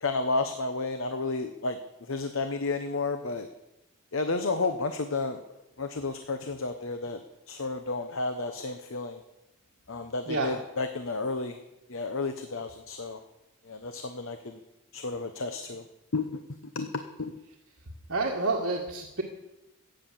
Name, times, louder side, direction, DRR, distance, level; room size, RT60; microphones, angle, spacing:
voice 1, 0.0-1.8 2.1-3.5 4.1-5.4 5.8-7.2 7.5-9.2 9.9-11.6 11.9-13.2 13.7-14.6 14.9-15.8 16.1-16.2 16.6-16.9 17.2-17.3, left 3 dB, 60° left, 8 dB, 0.9 m, -31 dB
voice 2, 18.1-19.2, right 3 dB, 55° right, -1 dB, 1.9 m, -28 dB
15.5 x 9.0 x 7.5 m, 0.95 s
head